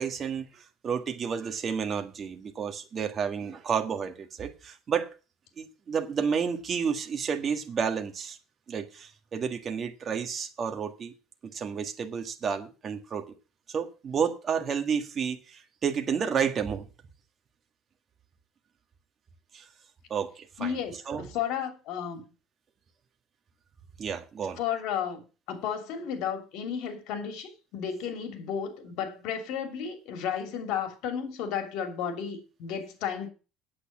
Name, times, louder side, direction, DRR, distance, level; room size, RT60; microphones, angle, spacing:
voice 1, 0.0-5.1 5.6-8.4 8.7-11.1 11.4-13.3 13.7-16.9 19.5-19.7 20.1-20.8 21.1-21.3 24.0-24.6, right 6 dB, 30° right, 1.7 m, -31 dB
voice 2, 20.6-22.3 24.6-33.3, left 8 dB, 65° left, 2.7 m, -33 dB
8.7 x 8.3 x 7.3 m
cardioid pair, 145°, 0 cm